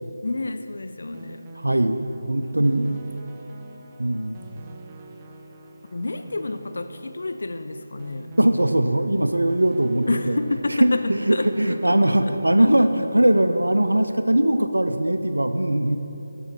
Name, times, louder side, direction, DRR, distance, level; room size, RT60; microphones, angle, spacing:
voice 1, 0.2-1.5 5.9-8.3 10.1-12.7, left 2 dB, 65° left, 9 dB, 0.4 m, -29 dB
sound 1, 1.1-14.6, right 3 dB, 25° right, 0.5 m, -46 dB
voice 2, 1.6-2.9 4.0-4.4 8.4-10.4 10.8-16.0, right 1 dB, 85° right, 8 dB, 0.5 m, -20 dB
8.0 x 6.3 x 5.8 m, 3.0 s
figure-of-eight pair, 160°, 0 cm